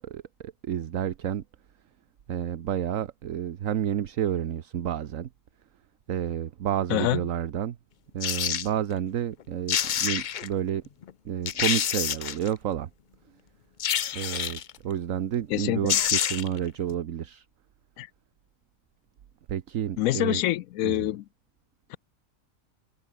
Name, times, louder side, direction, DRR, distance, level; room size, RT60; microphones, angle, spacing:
voice 1, 0.0-1.4 2.3-5.3 6.1-7.8 8.1-10.8 11.2-12.9 14.1-17.5 19.5-20.4 20.8-21.1, right 10 dB, 70° right, 1.3 m, -30 dB
voice 2, 6.9-7.2 15.5-15.9 18.0-18.1 20.0-21.2 21.9-22.0, left 15 dB, 85° left, 1.0 m, -26 dB
sound 1, 8.2-8.7 9.4-9.5 9.7-10.5 11.0-11.1 11.5-12.5 13.8-14.7 15.5-15.6 15.9-16.6 16.9-17.0, left 9 dB, 55° left, 0.5 m, -27 dB
omnidirectional pair, 1.4 m